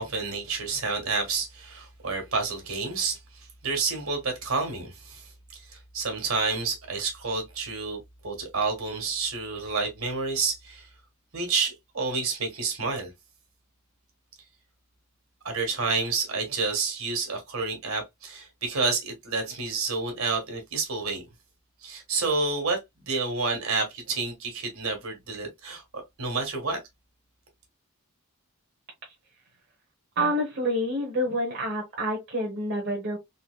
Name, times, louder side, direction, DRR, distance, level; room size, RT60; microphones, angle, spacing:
voice 1, 0.0-3.2 3.6-5.3 5.9-10.9 11.3-13.1 15.4-21.2 21.8-26.8, right 4 dB, 70° right, 1.6 m, -29 dB
voice 2, 30.2-33.2, equal, 50° right, 1.1 m, -28 dB
3.9 x 2.8 x 2.2 m
head